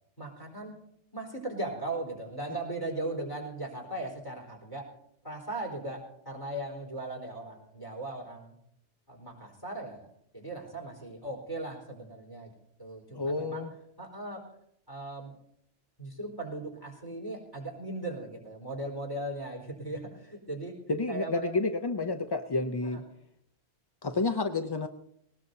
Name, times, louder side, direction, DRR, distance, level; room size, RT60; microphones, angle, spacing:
voice 1, 0.2-0.8 1.1-4.9 5.2-8.5 9.1-10.1 10.3-12.5 12.8-13.7 14.0-14.5 14.9-15.3 16.0-20.8 21.1-21.5 22.8-23.0, right 2 dB, 15° left, 0 dB, 4.2 m, -38 dB
voice 2, 13.1-13.7 20.9-23.0 24.0-24.9, left 3 dB, 35° left, 6 dB, 0.4 m, -30 dB
19.5 x 19.5 x 2.7 m, 0.73 s
omnidirectional pair, 1.2 m